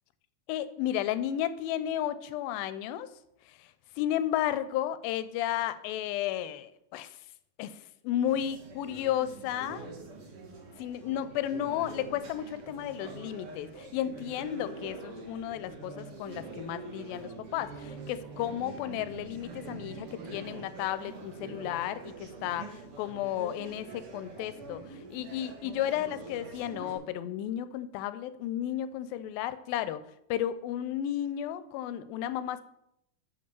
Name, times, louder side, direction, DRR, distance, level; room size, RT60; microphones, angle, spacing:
voice 1, 0.5-3.1 3.5-7.2 7.6-7.8 8.0-9.9 10.8-30.0 30.3-32.6, left 11 dB, 85° left, 13 dB, 2.3 m, -33 dB
sound 1, 8.3-27.0, right 3 dB, 60° right, 1.6 m, -45 dB
7.0 x 5.5 x 6.8 m, 0.79 s
omnidirectional pair, 4.2 m